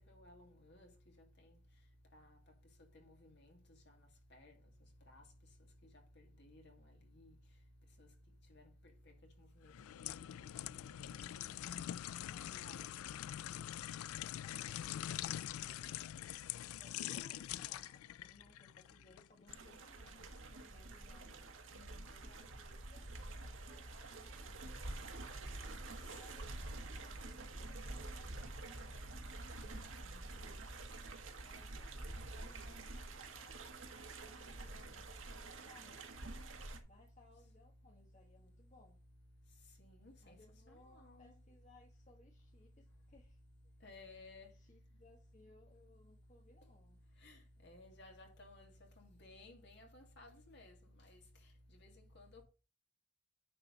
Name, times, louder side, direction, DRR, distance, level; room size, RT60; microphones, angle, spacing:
voice 1, 0.1-0.9 2.1-2.4 2.9-3.6 4.3-4.5 5.1-5.2 6.2-6.7 7.2-7.3 8.0-8.1 8.5-8.6 9.6-9.7 10.7-11.3 11.6-11.9 12.5-12.9 21.7-22.0 29.6-30.5 39.8-40.4 40.7-41.3 43.8-44.5 47.2-48.7 49.0-50.7 51.0-51.2 51.8-52.4, left 2 dB, 55° left, 2.5 m, -58 dB
sound 1, 9.7-19.6 20.1-20.3, left 12 dB, 85° left, 0.3 m, -44 dB
voice 2, 12.3-13.2 16.7-21.4 22.0-24.8 25.8-29.4 29.7-30.6 31.4-36.4 36.9-39.0 40.2-43.4 44.1-44.2 44.5-47.0, left 2 dB, 35° left, 1.2 m, -66 dB
sound 2, 19.5-36.8, right 2 dB, 70° right, 1.4 m, -48 dB
10.0 x 3.9 x 5.4 m
head